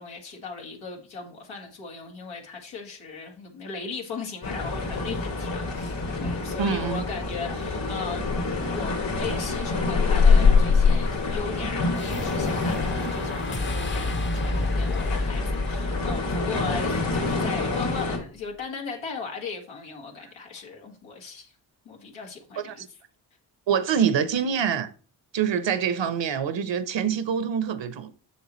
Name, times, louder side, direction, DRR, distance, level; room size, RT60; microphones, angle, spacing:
voice 1, 0.0-5.9 6.2-8.3 8.7-21.5 21.9-22.9, left 4 dB, 85° left, 1.8 m, -37 dB
sound 1, 4.4-18.2, left 4 dB, 70° left, 2.8 m, -25 dB
voice 2, 6.6-7.0 22.6-22.7 23.7-24.9 25.3-28.1, right 7 dB, 70° right, 0.9 m, -25 dB
sound 2, 11.9-18.3, left 2 dB, 25° left, 0.8 m, -32 dB
7.0 x 6.3 x 3.1 m
supercardioid pair, 45°, 46 cm